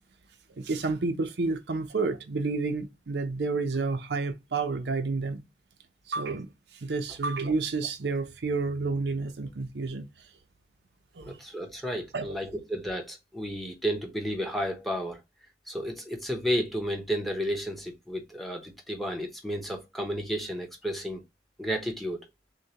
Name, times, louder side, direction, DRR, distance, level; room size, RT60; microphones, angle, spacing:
voice 1, 0.6-5.4 6.1-6.5 6.8-10.1 11.2-11.4 12.1-12.3, right 3 dB, 70° right, 0.6 m, -30 dB
voice 2, 11.2-15.2 15.7-21.2 21.6-22.2, equal, ahead, 0.8 m, -32 dB
6.3 x 2.2 x 2.8 m
head